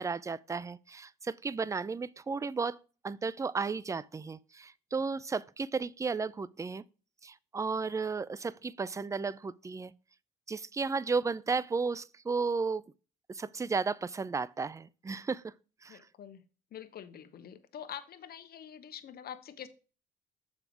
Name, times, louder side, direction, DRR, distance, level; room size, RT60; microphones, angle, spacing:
voice 1, 0.0-2.8 3.0-6.8 7.2-9.9 10.5-12.8 13.3-15.5 15.8-16.0, right 4 dB, 15° right, 0.4 m, -34 dB
voice 2, 15.9-16.4 16.7-19.7, left 9 dB, 60° left, 1.1 m, -45 dB
7.0 x 5.3 x 4.6 m
supercardioid pair, 80°, 19 cm